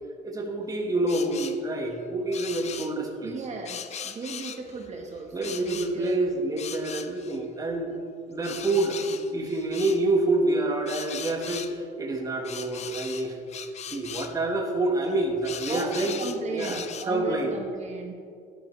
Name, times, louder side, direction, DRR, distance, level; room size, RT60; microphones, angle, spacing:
voice 1, 0.2-3.3 5.3-7.9 8.3-13.4 13.9-16.2 16.5-17.5, right 2 dB, 20° right, 0 dB, 1.4 m, -27 dB
sound 1, 1.1-1.6 2.3-2.9 3.6-4.9 5.4-6.2 6.6-7.4 8.4-10.0 10.9-11.7 12.4-14.4 15.0-17.1, left 8 dB, 40° left, 0.6 m, -39 dB
voice 2, 3.2-6.2 15.7-18.1, right 4 dB, 40° right, 1 dB, 1.3 m, -36 dB
12.0 x 10.5 x 3.2 m, 2.3 s
cardioid pair, 110°, 17 cm